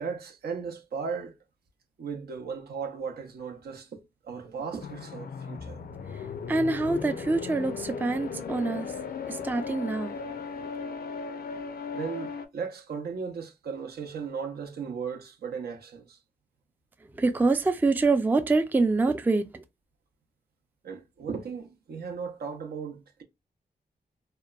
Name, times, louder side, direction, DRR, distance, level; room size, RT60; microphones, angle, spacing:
voice 1, 0.0-1.4 2.0-5.8 11.9-16.2 20.8-23.2, right 5 dB, 70° right, 0.6 m, -36 dB
sound 1, 4.8-12.5, left 5 dB, 65° left, 0.4 m, -37 dB
voice 2, 6.5-8.9 9.3-10.1 17.2-19.6, right 3 dB, 10° right, 0.3 m, -25 dB
2.8 x 2.1 x 2.3 m
cardioid pair, 65°, 17 cm